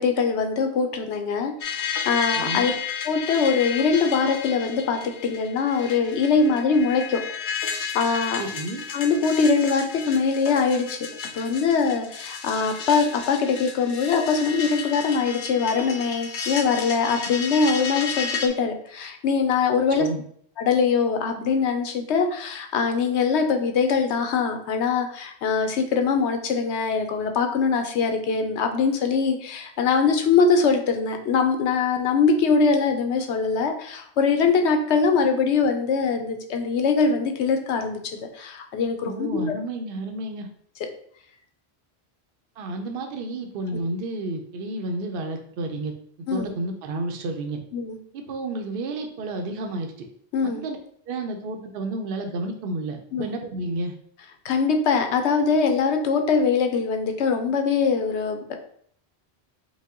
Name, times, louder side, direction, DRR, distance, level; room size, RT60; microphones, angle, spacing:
voice 1, 0.0-2.7 3.0-7.2 7.5-8.4 8.9-11.1 11.3-20.1 20.6-38.0 38.3-39.4 40.8-40.9 46.3-46.5 47.7-48.0 50.3-50.6 53.1-53.3 54.4-58.6, left 5 dB, 90° left, 5 dB, 0.9 m, -22 dB
sound 1, 1.6-18.5, left 6 dB, 55° left, 0.7 m, -32 dB
voice 2, 2.3-2.8 8.4-8.9 20.0-20.2 39.0-40.5 42.6-45.9 46.3-47.6 48.1-50.1 50.4-50.8 51.1-53.9, right 2 dB, 65° right, 4 dB, 0.8 m, -31 dB
5.1 x 2.2 x 3.6 m, 0.63 s
omnidirectional pair, 1.1 m